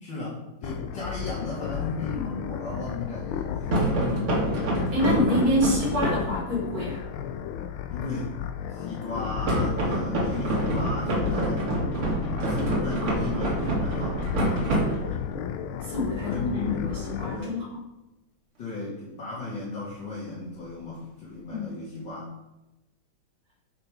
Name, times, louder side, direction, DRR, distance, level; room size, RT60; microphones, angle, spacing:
voice 1, 0.0-4.3 7.9-8.3 8.7-11.7 12.5-14.2 16.2-17.0 17.3-17.6 18.6-22.3, left 2 dB, 60° left, -9 dB, 3.1 m, -35 dB
sound 1, 0.6-17.4, left 9 dB, 80° left, 1.5 m, -34 dB
sound 2, 3.7-6.4 9.5-15.4, right 1 dB, 80° right, 3.1 m, -27 dB
voice 2, 4.9-7.0 15.8-17.8 21.5-21.8, left 1 dB, 50° right, -5 dB, 4.2 m, -27 dB
11.0 x 5.8 x 5.0 m, 0.96 s
omnidirectional pair, 2.3 m